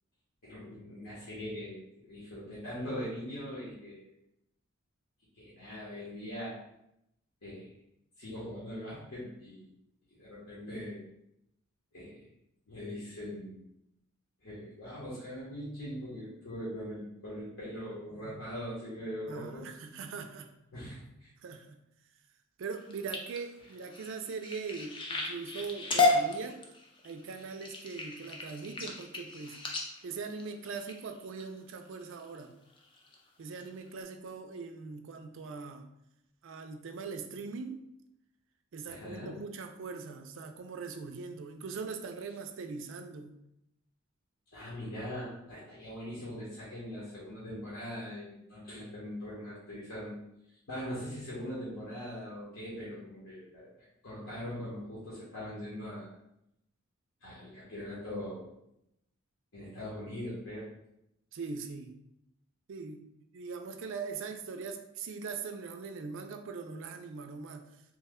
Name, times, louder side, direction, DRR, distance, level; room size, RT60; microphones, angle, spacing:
voice 1, 0.4-1.8 2.0-4.1 5.3-6.6 7.4-7.7 8.2-9.7 10.1-11.0 11.9-12.3 12.7-13.6 14.4-19.6 20.7-21.3 38.9-39.4 44.5-50.2 50.7-53.7 54.0-56.1 57.2-58.6 59.5-60.7, equal, 60° left, -8 dB, 0.9 m, -41 dB
voice 2, 19.3-20.5 21.4-21.8 22.6-26.6 27.0-29.6 30.0-32.5 33.4-35.8 36.4-37.8 38.7-43.3 61.3-61.9 62.7-63.0 63.3-67.7, right 4 dB, 60° right, 6 dB, 0.3 m, -41 dB
sound 1, 22.7-31.4 32.0-32.4 32.8-33.2 33.6-33.7 34.0-34.1, left 3 dB, 25° left, 0.4 m, -33 dB
3.1 x 2.1 x 3.5 m, 0.82 s
head